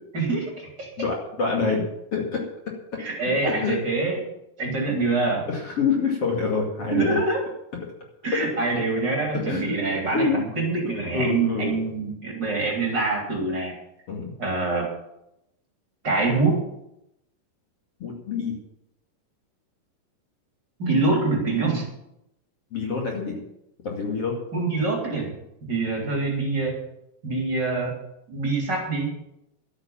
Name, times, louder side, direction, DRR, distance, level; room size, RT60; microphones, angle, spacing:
voice 1, 0.1-0.9 3.0-4.2 4.6-5.5 6.9-7.4 8.2-13.8 14.4-14.9 16.0-16.6 20.8-21.8 24.5-25.3 25.6-26.8 27.2-27.9 28.3-29.1, right 3 dB, 30° right, -1 dB, 3.6 m, -25 dB
voice 2, 1.0-1.8 2.1-2.5 3.2-3.8 5.5-7.2 8.3-8.4 9.3-10.4 10.8-11.8 14.1-14.3 18.0-18.6 22.7-23.4 23.8-24.3, left 5 dB, 45° left, -1 dB, 3.0 m, -26 dB
12.5 x 9.5 x 7.2 m, 0.82 s
omnidirectional pair, 4.0 m